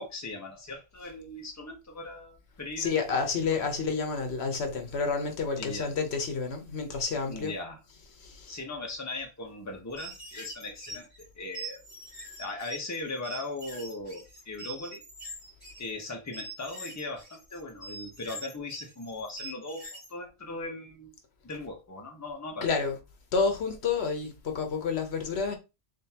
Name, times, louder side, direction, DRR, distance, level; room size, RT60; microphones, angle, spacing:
voice 1, 0.0-3.1 3.5-3.7 5.6-5.9 7.3-7.8 8.5-11.8 12.4-15.0 15.8-21.1 21.4-22.7, left 2 dB, 15° left, 0.9 m, -39 dB
voice 2, 2.8-7.5 8.1-8.6 22.6-23.0 23.3-25.6, left 5 dB, 70° left, 1.1 m, -29 dB
sound 1, 9.9-20.1, right 2 dB, 15° right, 2.5 m, -44 dB
3.8 x 3.6 x 2.8 m
omnidirectional pair, 1.1 m